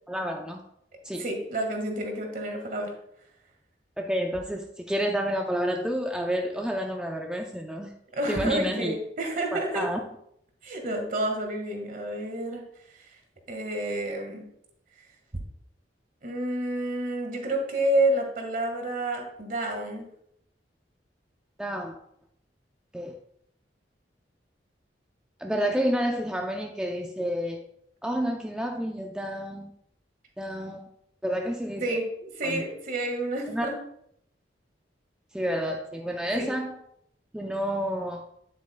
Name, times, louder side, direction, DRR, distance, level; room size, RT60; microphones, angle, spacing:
voice 1, 0.1-0.6 1.0-1.2 4.0-7.9 8.3-9.0 9.5-10.0 21.6-22.0 22.9-23.1 25.4-27.6 28.0-29.7 30.4-30.8 31.2-31.8 32.4-32.6 33.5-33.7 35.3-36.8 37.3-38.2, equal, 5° right, 1 dB, 0.5 m, -29 dB
voice 2, 1.2-2.9 8.1-9.9 10.6-12.6 12.9-13.0 13.5-14.5 16.2-20.0 31.8-33.8 36.3-36.5, right 1 dB, 50° right, 3 dB, 1.6 m, -29 dB
9.1 x 8.1 x 2.2 m, 0.74 s
head